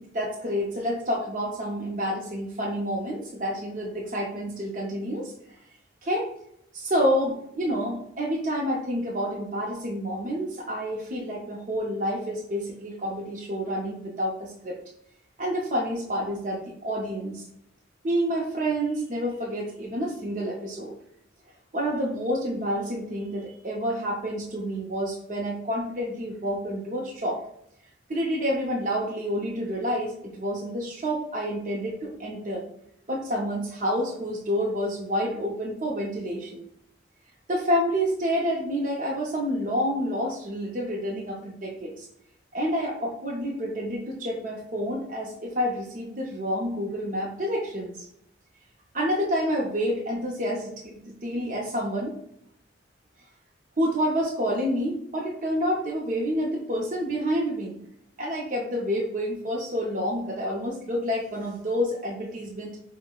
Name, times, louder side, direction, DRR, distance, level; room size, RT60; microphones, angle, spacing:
voice 1, 0.1-5.3 6.0-6.3 6.7-14.8 15.4-17.4 18.0-20.9 21.7-27.4 28.1-32.6 33.1-36.6 37.5-42.1 42.5-48.1 48.9-52.2 53.8-57.8 58.2-62.8, equal, 40° right, -2 dB, 0.5 m, -28 dB
5.5 x 2.0 x 2.2 m, 0.74 s
head